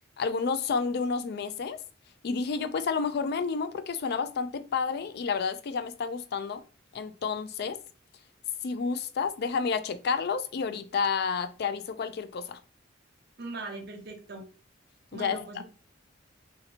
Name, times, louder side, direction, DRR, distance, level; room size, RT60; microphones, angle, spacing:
voice 1, 0.2-1.8 2.2-6.6 6.9-7.8 8.6-12.6 15.1-15.4, left 5 dB, 55° left, 0.4 m, -30 dB
voice 2, 13.4-14.5 15.1-15.6, right 3 dB, 60° right, 0.7 m, -40 dB
3.0 x 2.8 x 2.8 m
head